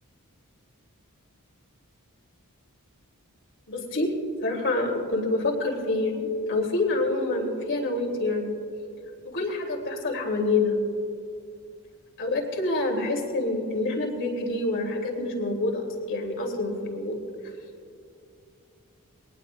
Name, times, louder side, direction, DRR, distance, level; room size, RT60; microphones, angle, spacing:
voice 1, 3.7-4.1 4.4-8.5 9.2-10.8 12.2-17.2, left 2 dB, 60° left, 1 dB, 3.0 m, -27 dB
22.5 x 19.0 x 2.4 m, 2.5 s
head